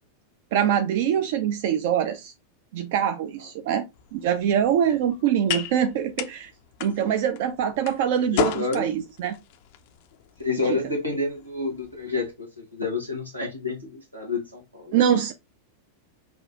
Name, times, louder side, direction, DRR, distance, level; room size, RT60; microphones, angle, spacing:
voice 1, 0.5-2.3 2.7-3.8 4.1-6.5 6.8-9.4 14.9-15.3, right 9 dB, 50° right, 0.4 m, -24 dB
sound 1, 3.9-12.3, left 10 dB, 50° left, 0.4 m, -35 dB
voice 2, 8.3-8.9 10.4-15.0, left 3 dB, 85° right, 1.1 m, -29 dB
6.0 x 2.4 x 2.4 m
figure-of-eight pair, 90°, 0 cm